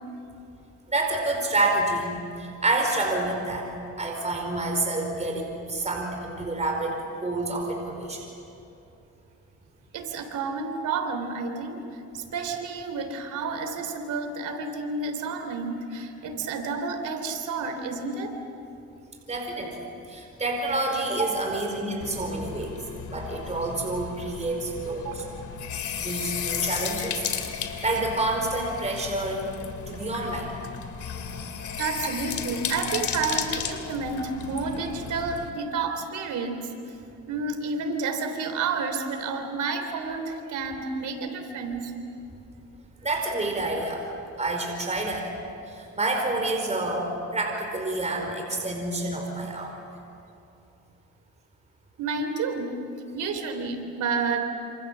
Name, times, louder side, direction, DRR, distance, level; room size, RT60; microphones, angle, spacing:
voice 1, 0.9-2.2 2.6-3.7 4.0-8.2 19.3-22.8 23.1-25.2 26.0-27.2 27.8-29.4 29.9-30.5 43.0-44.0 44.4-45.3 45.7-49.7, right 2 dB, 20° right, 2 dB, 4.9 m, -28 dB
voice 2, 9.9-18.3 25.0-25.3 31.8-36.7 37.3-41.9 52.0-52.7 53.1-54.4, right 4 dB, 80° right, 6 dB, 3.5 m, -30 dB
sound 1, 22.0-35.5, left 8 dB, 70° left, 2.8 m, -34 dB
27.5 x 27.0 x 7.5 m, 2.7 s
cardioid pair, 90°, 30 cm